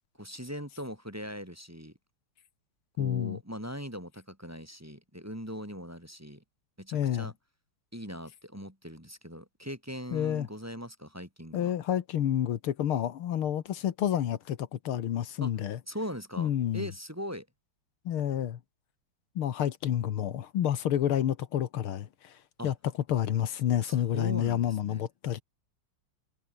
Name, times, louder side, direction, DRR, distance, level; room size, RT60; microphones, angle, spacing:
voice 1, 0.2-1.9 3.0-6.4 6.8-7.3 7.9-11.7 15.4-15.5 15.9-17.5 22.6-22.7 23.8-25.1, equal, 5° right, 3.7 m, -40 dB
voice 2, 3.0-3.4 6.9-7.3 10.1-10.5 11.5-15.8 16.4-16.9 18.1-18.6 19.4-22.4 22.6-22.7 23.1-25.4, left 10 dB, 75° left, 2.1 m, -29 dB
omnidirectional pair, 2.4 m